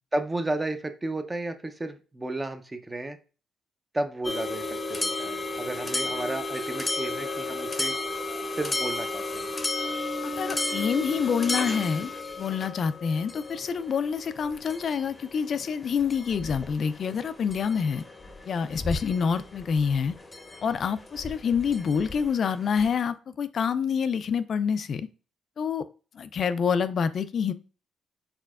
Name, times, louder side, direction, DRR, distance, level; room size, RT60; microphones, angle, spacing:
voice 1, 0.1-3.2 3.9-8.0 8.5-9.5, right 2 dB, 20° right, 8 dB, 0.6 m, -33 dB
sound 1, 4.2-22.9, left 2 dB, 20° left, 0.7 m, -34 dB
voice 2, 10.2-12.1 12.4-18.0 18.5-20.1 20.6-25.1 25.6-25.8 26.1-27.5, left 6 dB, 55° left, 12 dB, 0.3 m, -27 dB
4.5 x 4.2 x 2.4 m, 0.34 s
cardioid pair, 90°, 0 cm